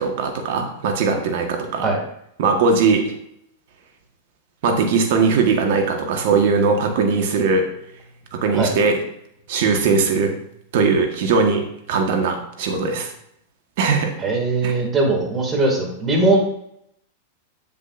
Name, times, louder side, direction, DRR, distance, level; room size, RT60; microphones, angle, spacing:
voice 1, 0.0-1.9 2.4-3.1 4.6-7.7 8.3-9.0 9.5-10.3 10.7-13.1 13.8-14.1 14.6-14.7, right 4 dB, 60° right, 4 dB, 1.5 m, -19 dB
voice 2, 14.2-16.4, right 2 dB, 25° right, 1 dB, 2.4 m, -20 dB
7.6 x 7.5 x 2.6 m, 0.74 s
hypercardioid pair, 100°, 0 cm